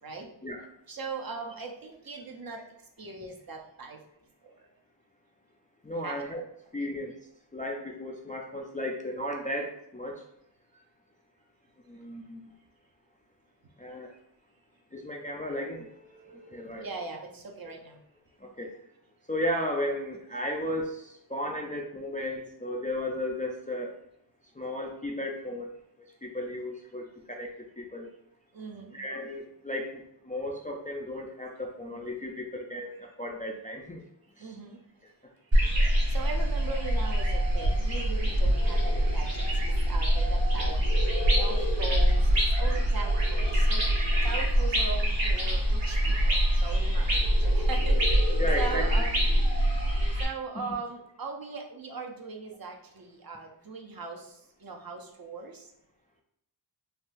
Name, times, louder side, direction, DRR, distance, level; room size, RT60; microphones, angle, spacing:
voice 1, 0.9-2.6 3.0-4.0 4.4-4.5 6.0-6.2 6.8-6.9 10.7-10.8 16.8-18.0 28.5-29.0 34.4-34.8 36.1-40.8 41.3-49.2 49.6-49.7 50.2-55.7, right 4 dB, 50° right, 1 dB, 0.6 m, -39 dB
voice 2, 5.8-6.4 6.7-7.1 7.5-10.2 11.9-12.4 13.8-14.1 14.9-17.0 18.4-18.7 19.3-23.9 24.6-25.7 26.2-28.1 28.9-34.0 34.4-34.5 48.4-48.9 50.6-50.7, left 1 dB, 20° left, 0 dB, 0.3 m, -35 dB
sound 1, 35.5-50.2, equal, 70° right, 1.3 m, -24 dB
3.6 x 2.2 x 2.5 m, 0.76 s
wide cardioid pair, 45°, 46 cm